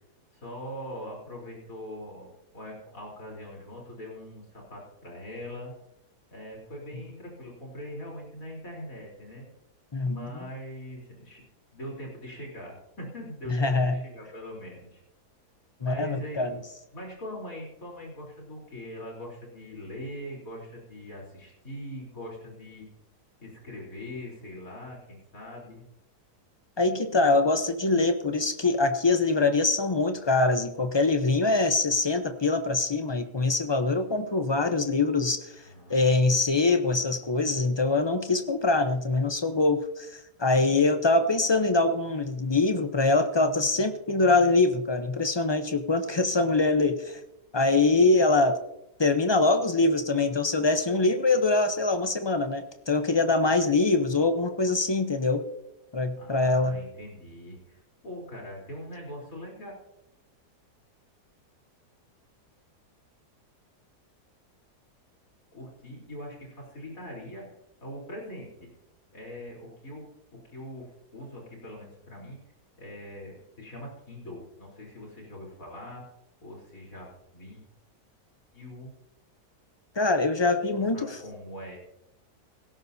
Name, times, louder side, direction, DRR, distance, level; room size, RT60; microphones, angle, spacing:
voice 1, 0.4-5.7 6.3-9.5 10.0-11.4 11.7-15.0 15.8-16.6 16.9-22.8 23.4-25.8 35.6-36.3 56.2-59.7 65.5-67.5 67.8-68.7 69.1-70.1 70.4-70.9 71.1-72.4 72.8-76.0 76.4-77.6 78.5-78.9 80.7-81.8, equal, 55° left, -2 dB, 4.1 m, -42 dB
voice 2, 9.9-10.3 13.5-14.0 15.8-16.5 26.8-35.5 35.9-47.2 47.5-48.6 49.0-55.4 55.9-56.8 80.0-81.0, left 3 dB, 40° left, 8 dB, 0.3 m, -24 dB
18.0 x 16.0 x 2.7 m, 0.86 s
omnidirectional pair, 1.7 m